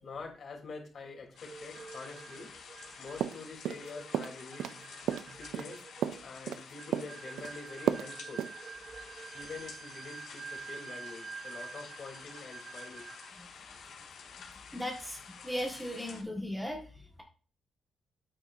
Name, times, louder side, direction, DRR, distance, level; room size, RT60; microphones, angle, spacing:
voice 1, 0.0-2.6 3.0-4.8 5.3-5.8 6.2-8.5 9.3-13.1, left 4 dB, 45° left, 0 dB, 3.4 m, -46 dB
sound 1, 1.4-16.2, left 6 dB, 75° left, 3.2 m, -50 dB
sound 2, 1.5-13.4, right 5 dB, 45° right, 0.9 m, -48 dB
sound 3, 3.2-3.9 4.1-4.8 5.1-6.6 6.9-7.5 7.9-8.1 8.4-8.5, right 10 dB, 85° right, 0.4 m, -33 dB
voice 2, 14.7-17.2, equal, ahead, 0 dB, 1.7 m, -37 dB
9.0 x 8.9 x 2.7 m, 0.39 s
cardioid pair, 130°, 0 cm